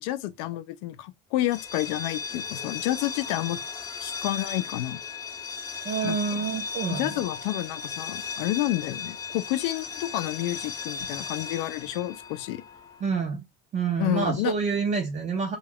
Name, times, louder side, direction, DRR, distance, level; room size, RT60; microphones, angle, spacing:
voice 1, 0.0-3.6 4.0-5.0 6.0-6.4 6.9-12.6 14.0-14.5, left 15 dB, 85° left, 0.5 m, -30 dB
sound 1, 1.4-13.1, left 5 dB, 15° left, 0.5 m, -36 dB
voice 2, 5.8-7.2 13.0-13.4 13.7-15.6, right 5 dB, 30° right, 0.6 m, -27 dB
2.3 x 2.2 x 3.4 m
cardioid pair, 135°, 21 cm